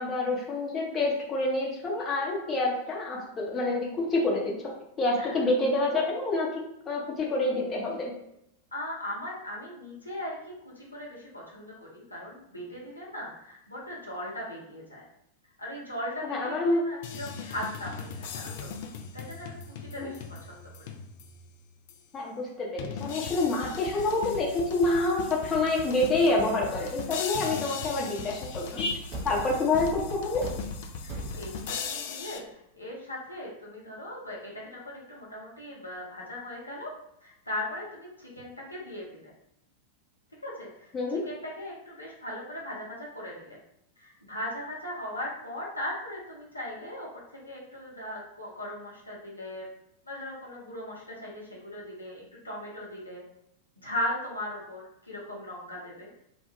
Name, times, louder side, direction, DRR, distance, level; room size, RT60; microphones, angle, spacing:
voice 1, 0.0-4.5 5.0-6.6 6.9-8.1 16.2-16.8 20.0-20.1 22.1-30.4 40.9-41.2, left 2 dB, 25° left, -3 dB, 0.7 m, -27 dB
voice 2, 5.1-5.5 8.7-15.0 15.6-18.7 19.1-20.9 29.3-29.7 31.0-36.9 37.2-39.3 40.4-43.6 44.0-47.1 47.5-49.7 50.0-53.2 53.8-56.1, left 1 dB, 85° left, -4 dB, 0.6 m, -38 dB
sound 1, 17.0-21.4 21.9-22.0 22.8-32.4, left 6 dB, 50° left, 0.3 m, -38 dB
Thump thud, 29.1-31.8, right 2 dB, 35° right, 0.5 m, -39 dB
2.2 x 2.2 x 3.0 m, 0.79 s
figure-of-eight pair, 90°, 0 cm